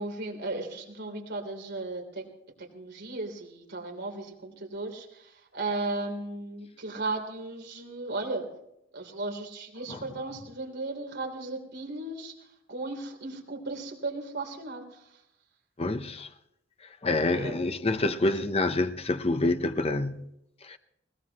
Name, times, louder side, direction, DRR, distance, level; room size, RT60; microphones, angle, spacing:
voice 1, 0.0-2.2 2.6-8.6 8.9-15.2 17.3-17.6 18.0-18.7, right 2 dB, 60° right, 3.3 m, -36 dB
voice 2, 15.8-16.3 17.0-20.3 20.6-20.8, left 2 dB, 30° left, 0.8 m, -27 dB
21.0 x 18.5 x 3.0 m
head